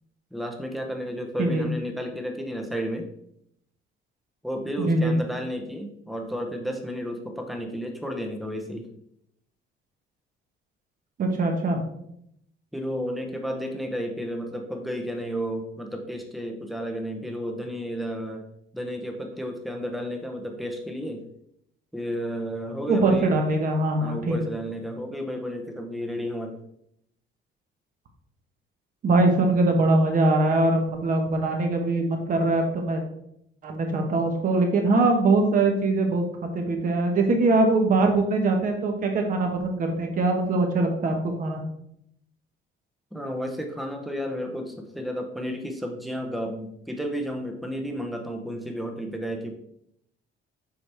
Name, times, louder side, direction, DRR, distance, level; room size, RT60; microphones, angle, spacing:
voice 1, 0.3-3.1 4.4-8.9 12.7-18.4 18.7-21.2 21.9-23.3 24.0-26.6 43.1-49.5, equal, ahead, 3 dB, 0.7 m, -32 dB
voice 2, 4.8-5.1 11.2-11.8 22.9-24.4 29.0-33.0 33.6-41.6, right 2 dB, 45° right, 3 dB, 1.2 m, -22 dB
7.0 x 4.9 x 3.3 m, 0.75 s
cardioid pair, 170°, 20 cm